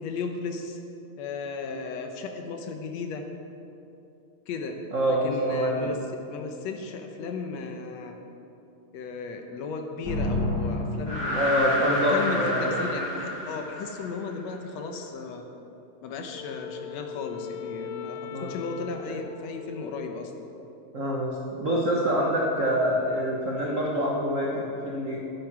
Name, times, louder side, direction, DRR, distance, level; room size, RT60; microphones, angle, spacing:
voice 1, 0.0-0.8 1.2-3.3 4.5-4.8 5.1-6.0 6.3-8.2 8.9-11.7 12.1-15.5 16.0-20.4, left 4 dB, 70° left, 4 dB, 1.9 m, -35 dB
voice 2, 4.9-6.0 11.3-12.8 18.3-18.6 19.1-19.2 20.9-25.2, equal, 75° right, -3 dB, 0.7 m, -26 dB
sound 1, 10.0-14.4, left 1 dB, 20° left, 3.5 m, -29 dB
Wind instrument woodwind instrument, 16.3-20.8, left 8 dB, 90° left, 2.1 m, -40 dB
12.0 x 9.4 x 6.1 m, 2.9 s
omnidirectional pair, 3.4 m